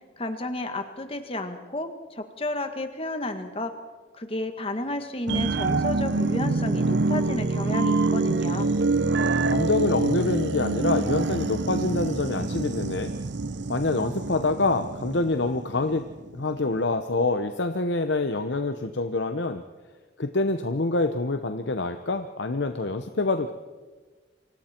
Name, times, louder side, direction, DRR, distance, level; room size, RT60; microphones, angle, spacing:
voice 1, 0.2-3.7 4.1-8.8, left 1 dB, 30° left, 7 dB, 1.8 m, -32 dB
sound 1, 5.3-16.3 16.7-16.8, right 3 dB, 70° right, 0.8 m, -26 dB
voice 2, 9.5-13.1 13.7-16.1 16.3-19.6 20.2-23.5, left 3 dB, 75° left, 8 dB, 0.9 m, -26 dB
29.0 x 25.0 x 4.5 m, 1.4 s
head